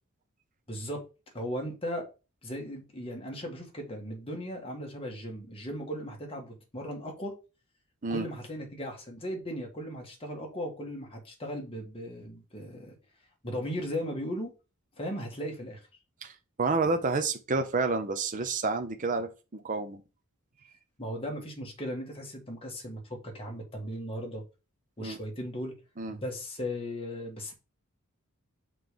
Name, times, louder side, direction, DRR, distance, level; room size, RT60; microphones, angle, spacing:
voice 1, 0.7-1.0 1.3-2.1 2.4-7.4 8.1-13.0 13.4-14.5 15.0-15.8 21.0-24.4 25.0-25.7 26.1-27.5, equal, 25° left, 1.7 m, -37 dB
voice 2, 16.6-20.0 25.0-25.2 26.0-26.2, right 3 dB, 40° right, 0.7 m, -29 dB
6.0 x 3.3 x 5.1 m
head